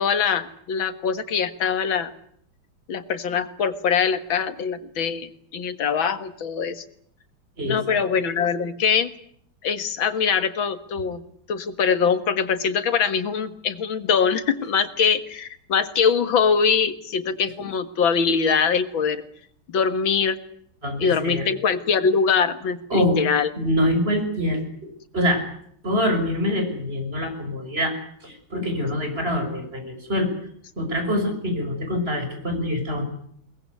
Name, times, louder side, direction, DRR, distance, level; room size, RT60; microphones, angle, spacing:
voice 1, 0.0-2.1 2.9-6.8 7.6-9.1 9.6-11.2 11.5-19.2 19.7-20.4 21.0-23.5, left 6 dB, 70° left, 11 dB, 2.4 m, -23 dB
voice 2, 7.6-8.0 20.8-21.5 22.9-23.2 23.6-24.6 25.1-25.5 25.8-30.3 30.8-33.0, left 1 dB, 25° right, 5 dB, 6.3 m, -25 dB
22.5 x 20.0 x 9.6 m, 0.66 s
omnidirectional pair, 2.3 m